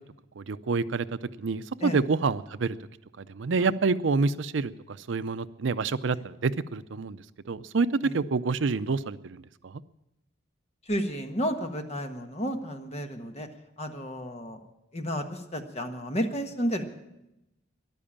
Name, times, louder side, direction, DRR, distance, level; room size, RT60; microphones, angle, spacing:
voice 1, 0.4-2.8 3.2-7.9 8.1-9.8, right 4 dB, 70° right, 14 dB, 0.5 m, -28 dB
voice 2, 10.9-13.5 13.8-14.6 14.9-16.8, equal, 30° left, 5 dB, 1.4 m, -32 dB
14.0 x 11.5 x 8.6 m, 0.90 s
head